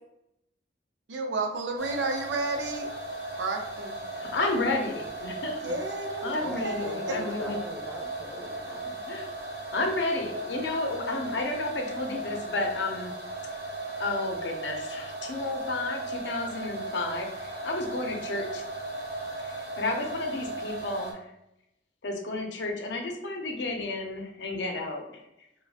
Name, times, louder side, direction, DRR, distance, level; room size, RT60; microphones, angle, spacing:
voice 1, 1.1-2.9 3.4-4.1 5.6-7.0, right 3 dB, 85° right, 3 dB, 0.5 m, -32 dB
sound 1, 1.8-21.1, right 2 dB, 55° right, 0.8 m, -37 dB
voice 2, 4.1-5.6 6.2-7.6 9.1-13.1 14.0-18.6 19.4-21.3 22.0-25.3, left 2 dB, 75° left, 2 dB, 0.6 m, -32 dB
voice 3, 6.4-9.0, right 1 dB, ahead, -1 dB, 0.5 m, -41 dB
2.4 x 2.2 x 3.4 m, 0.84 s
head